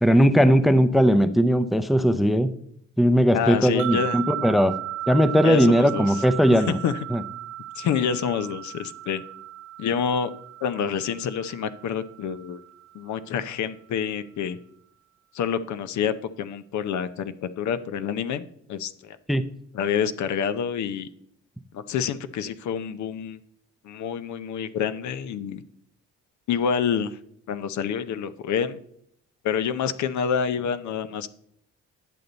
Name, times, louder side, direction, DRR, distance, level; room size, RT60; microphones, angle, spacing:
voice 1, 0.0-2.5 3.0-4.7 5.1-6.8 7.1-7.2 19.3-19.4, equal, ahead, 12 dB, 0.5 m, -19 dB
voice 2, 3.3-4.2 5.4-6.1 6.6-7.0 7.8-9.2 9.8-10.3 10.6-12.6 12.9-14.6 15.3-19.2 19.7-21.1 21.7-23.4 23.8-25.6 26.5-27.2 27.5-28.8 29.4-31.3, left 7 dB, 70° left, 12 dB, 0.7 m, -27 dB
sound 1, 3.8-13.1, right 13 dB, 70° right, 0.5 m, -36 dB
10.5 x 6.8 x 3.9 m, 0.69 s
cardioid pair, 90°, 30 cm